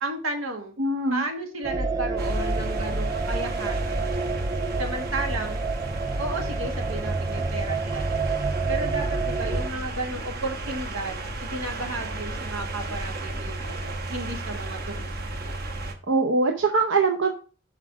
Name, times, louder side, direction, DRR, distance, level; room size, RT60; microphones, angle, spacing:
voice 1, 0.0-0.7 1.1-4.0 4.8-5.6 6.2-8.3 8.7-15.1 15.3-15.4, right 2 dB, 90° right, 3 dB, 1.8 m, -33 dB
voice 2, 0.8-1.2 16.1-17.3, right 3 dB, 65° right, 3 dB, 0.7 m, -22 dB
sound 1, 1.6-9.7, right 3 dB, 15° right, 0.3 m, -28 dB
sound 2, 2.2-15.9, right 2 dB, 50° right, 1.1 m, -34 dB
6.0 x 4.8 x 5.8 m, 0.36 s
head